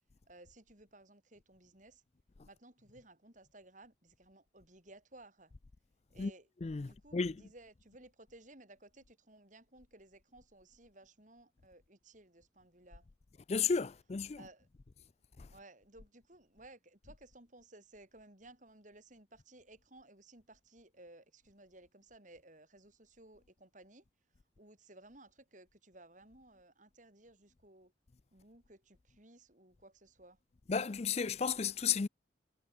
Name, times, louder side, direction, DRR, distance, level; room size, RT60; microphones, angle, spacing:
voice 1, 0.3-2.0 2.5-5.5 6.1-6.5 6.8-13.1 14.4-14.7 15.5-24.0 24.6-27.9 28.3-30.4, right 2 dB, 40° right, 6.4 m, -58 dB
voice 2, 6.6-7.4 13.5-14.4 15.4-15.5 30.7-32.1, left 6 dB, 35° left, 0.4 m, -33 dB
head